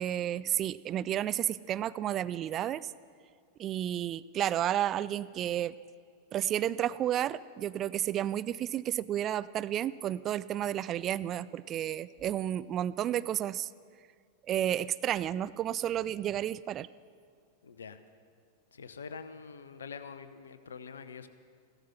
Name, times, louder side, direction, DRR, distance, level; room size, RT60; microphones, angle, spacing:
voice 1, 0.0-2.9 3.6-5.8 6.3-13.7 14.5-16.9, right 11 dB, 30° right, 17 dB, 0.3 m, -31 dB
voice 2, 17.6-18.0 18.7-21.3, left 5 dB, 70° left, 11 dB, 0.8 m, -45 dB
15.0 x 13.0 x 5.7 m, 2.1 s
figure-of-eight pair, 90°, 0 cm